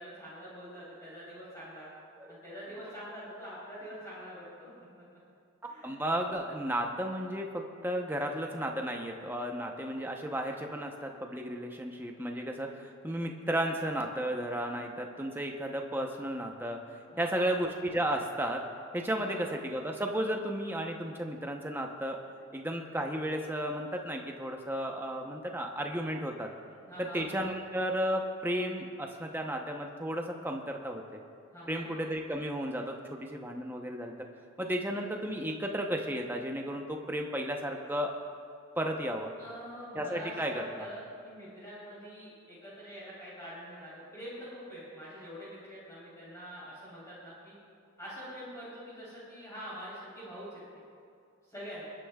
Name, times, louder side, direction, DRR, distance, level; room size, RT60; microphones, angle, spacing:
voice 1, 0.0-1.9 2.3-5.0 5.7-5.9 17.1-17.5 19.1-19.4 26.9-27.2 31.5-31.9 39.4-47.5 48.0-50.6 51.5-51.8, equal, 15° left, -10 dB, 3.7 m, -45 dB
voice 2, 5.8-16.8 17.2-18.6 18.9-22.2 22.5-26.5 27.0-31.2 31.7-34.1 34.6-38.1 38.8-39.3 39.9-40.9, right 1 dB, 10° right, 2 dB, 0.8 m, -33 dB
29.5 x 10.0 x 2.4 m, 2.4 s
head